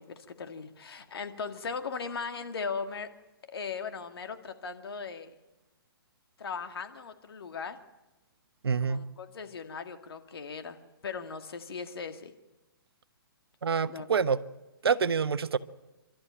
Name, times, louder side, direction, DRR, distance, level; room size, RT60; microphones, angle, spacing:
voice 1, 0.0-3.1 3.5-5.3 6.4-7.8 8.8-10.8 11.0-12.3 13.9-14.1, left 5 dB, 80° left, 2.3 m, -38 dB
voice 2, 8.6-9.0 13.6-14.4 14.8-15.6, right 6 dB, 85° right, 1.1 m, -26 dB
29.5 x 13.0 x 9.0 m
hypercardioid pair, 145°, 13 cm